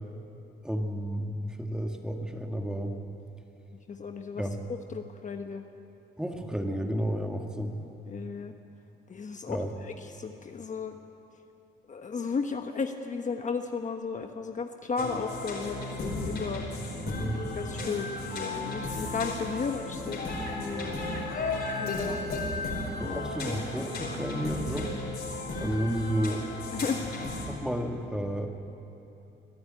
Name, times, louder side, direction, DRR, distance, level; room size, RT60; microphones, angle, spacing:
voice 1, 0.6-3.0 4.3-4.6 6.2-7.8 9.5-9.7 17.0-17.4 23.0-24.9 25.6-26.5 27.5-28.5, equal, 5° right, 3 dB, 2.0 m, -32 dB
voice 2, 3.9-4.4 4.9-5.7 8.1-8.5 9.1-11.0 11.9-16.6 17.5-20.9 21.8-22.4 23.0-23.2 26.7-27.1, left 5 dB, 40° left, 5 dB, 1.1 m, -34 dB
sound 1, 15.0-27.5, left 2 dB, 55° left, 4.9 m, -34 dB
22.5 x 13.0 x 9.1 m, 2.9 s
cardioid pair, 90°, 20 cm